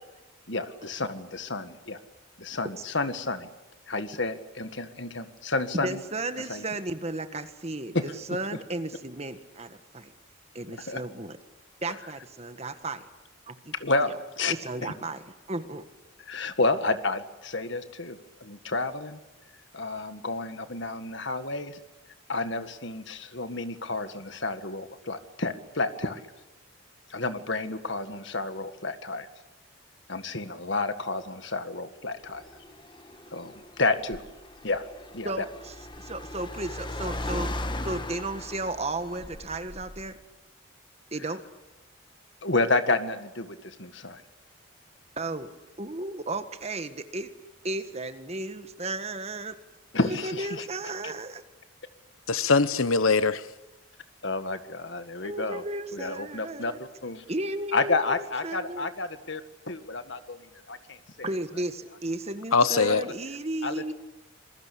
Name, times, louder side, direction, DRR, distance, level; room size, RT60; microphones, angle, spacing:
voice 1, 0.5-2.0 2.4-3.5 3.9-6.0 6.5-6.6 7.9-8.1 10.7-11.0 13.7-14.5 14.8-14.9 16.3-19.2 19.7-21.8 22.3-26.3 27.1-29.3 30.1-32.5 33.3-34.2 34.6-34.8 35.1-35.5 42.4-44.2 49.9-50.7 51.0-51.1 54.2-55.6 55.9-57.2 57.7-59.4 59.7-61.3 63.6-63.9, left 3 dB, 60° left, 1.8 m, -30 dB
voice 2, 5.7-7.9 8.3-10.1 10.5-11.3 11.8-13.1 13.5-13.7 14.6-15.2 15.5-15.8 35.2-37.5 37.8-40.1 41.1-41.4 45.2-45.5 45.8-47.3 47.6-49.6 50.2-51.4 55.2-56.8 57.3-58.0 58.4-58.9 61.2-63.9, right 2 dB, 30° right, 1.6 m, -34 dB
Car, 32.2-40.2, left 1 dB, 20° left, 1.6 m, -38 dB
voice 3, 52.3-53.4 62.5-63.0, left 4 dB, 85° left, 1.1 m, -22 dB
26.5 x 22.0 x 8.5 m
head